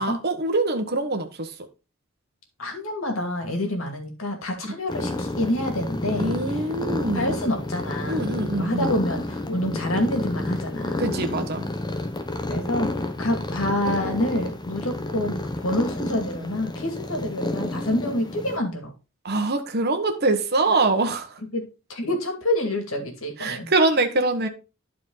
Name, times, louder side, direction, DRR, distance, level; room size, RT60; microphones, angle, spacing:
voice 1, 0.0-1.5 6.2-7.3 8.1-8.9 11.0-11.7 19.2-21.4 23.4-24.5, right 2 dB, 50° right, 1.3 m, -24 dB
voice 2, 2.6-6.4 7.1-11.1 12.4-18.9 21.5-21.6 21.9-23.7, left 1 dB, 75° left, 2.5 m, -27 dB
sound 1, 4.9-18.6, left 2 dB, 20° left, 1.0 m, -30 dB
11.5 x 4.6 x 4.0 m
head